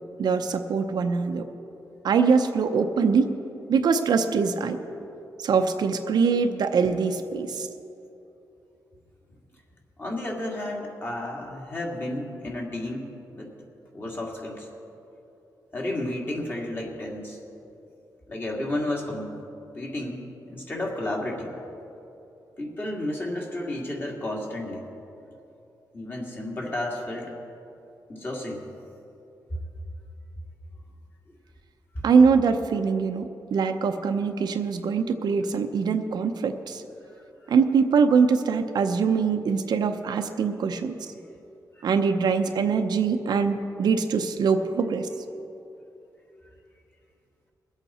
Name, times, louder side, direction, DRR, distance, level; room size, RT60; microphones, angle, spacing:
voice 1, 0.2-1.5 2.0-3.3 3.7-4.8 5.4-7.7 32.0-36.8 37.5-41.1 41.8-45.1, right 5 dB, 75° right, 6 dB, 0.7 m, -23 dB
voice 2, 10.0-13.5 13.9-14.7 15.7-17.4 18.3-19.4 19.8-21.5 22.6-24.8 25.9-27.3 28.1-28.6 37.4-37.5, left 1 dB, 30° left, -1 dB, 2.1 m, -32 dB
22.0 x 8.2 x 4.3 m, 2.9 s
wide cardioid pair, 140°, 7 cm